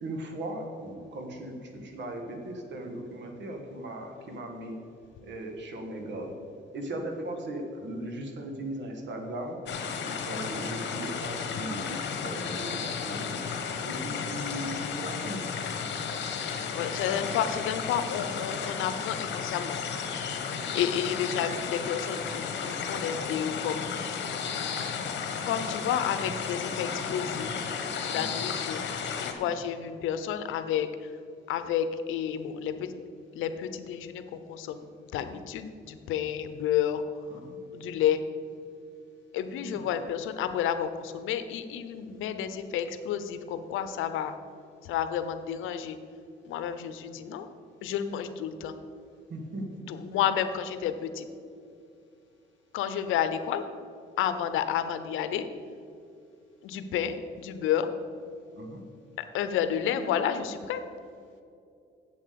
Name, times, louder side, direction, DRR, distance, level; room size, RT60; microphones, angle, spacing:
voice 1, 0.0-4.8 5.2-6.3 6.7-9.6 9.9-12.0 12.2-13.4 13.8-15.5 20.5-20.8 28.1-28.2 29.3-29.5 37.3-37.6 39.6-39.8 49.3-50.2 58.5-58.8, right 1 dB, 65° right, 3 dB, 1.8 m, -38 dB
sound 1, 9.7-29.3, left 6 dB, 65° left, 1.1 m, -33 dB
voice 2, 16.7-19.8 20.7-23.8 25.5-27.5 28.0-28.8 29.2-31.1 31.5-32.9 33.3-34.9 35.1-37.0 37.7-38.2 39.3-44.3 44.8-46.0 46.4-47.5 47.8-48.7 49.9-51.3 52.7-53.6 54.2-55.5 56.6-57.9 59.2-60.8, left 9 dB, 90° left, 10 dB, 0.7 m, -30 dB
7.8 x 7.4 x 6.8 m, 2.5 s
cardioid pair, 90°, 20 cm